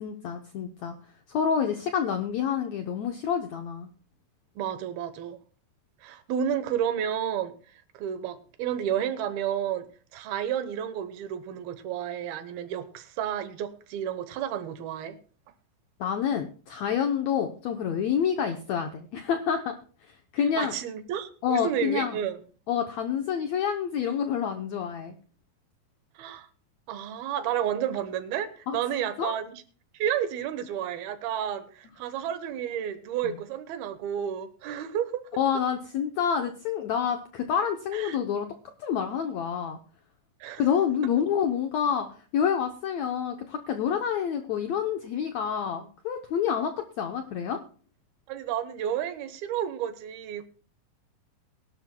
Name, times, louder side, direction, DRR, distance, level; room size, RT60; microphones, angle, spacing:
voice 1, 0.0-0.9 1.3-3.9 16.0-19.7 20.3-20.7 21.4-22.2 22.7-25.2 28.7-28.8 29.2-29.3 33.2-33.4 35.4-38.5 38.8-39.8 40.6-46.7 47.0-47.6, left 8 dB, 80° left, 1.5 m, -28 dB
voice 2, 4.6-5.4 6.0-7.5 7.9-9.9 10.1-15.2 20.6-22.4 26.2-26.5 26.9-29.5 29.9-35.3 37.9-38.2 40.4-40.6 48.3-50.5, right 9 dB, 90° right, 3.0 m, -31 dB
21.5 x 11.5 x 2.2 m
omnidirectional pair, 4.2 m